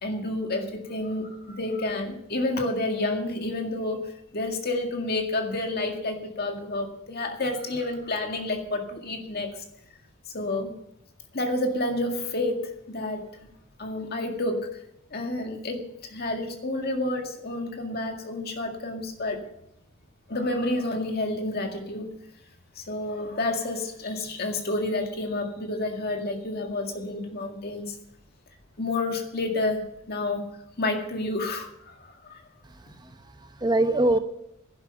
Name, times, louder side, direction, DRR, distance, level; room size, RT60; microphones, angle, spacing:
voice 1, 0.0-9.6 10.3-10.8 11.3-13.3 13.8-14.7 15.1-19.4 20.3-22.1 22.8-28.0 28.8-30.4 30.8-32.4, left 2 dB, 50° left, 4 dB, 2.0 m, -29 dB
voice 2, 32.6-34.2, right 2 dB, 20° right, 8 dB, 0.7 m, -25 dB
11.5 x 11.0 x 6.9 m, 0.79 s
head